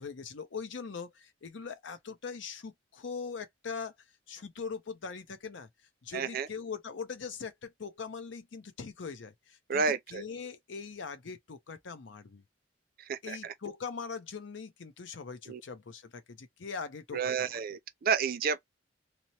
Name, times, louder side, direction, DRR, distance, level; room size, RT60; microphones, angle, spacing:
voice 1, 0.0-3.9 4.3-5.7 6.0-12.4 13.2-17.6, left 5 dB, 75° left, 0.6 m, -41 dB
voice 2, 6.1-6.5 9.7-10.2 13.1-13.5 15.5-15.6 17.1-18.6, right 6 dB, 50° right, 0.4 m, -31 dB
2.8 x 2.0 x 2.8 m
head